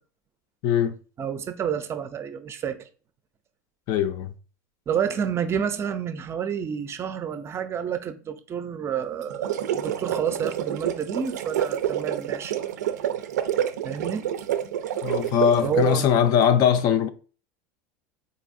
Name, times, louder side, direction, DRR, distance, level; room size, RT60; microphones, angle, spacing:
voice 1, 0.6-1.0 3.9-4.3 15.0-17.1, left 8 dB, 50° left, 0.4 m, -21 dB
voice 2, 1.2-2.9 4.9-12.6 13.8-14.3 15.6-16.1, right 8 dB, 30° right, 0.5 m, -29 dB
sound 1, 9.2-16.0, right 10 dB, 90° right, 0.4 m, -28 dB
4.0 x 2.5 x 2.5 m
hypercardioid pair, 105°, 9 cm